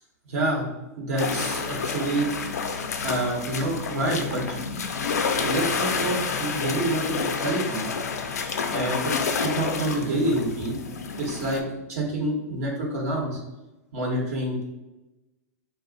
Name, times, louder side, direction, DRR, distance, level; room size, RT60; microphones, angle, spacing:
voice 1, 0.3-0.7 1.0-2.3 3.0-4.6 5.4-7.9 8.7-10.8 11.2-11.6 11.9-13.4 13.9-14.6, right 1 dB, 70° right, -2 dB, 0.9 m, -27 dB
sound 1, 1.2-11.6, left 5 dB, 85° left, 0.4 m, -29 dB
2.4 x 2.0 x 3.8 m, 1.0 s
hypercardioid pair, 115°, 9 cm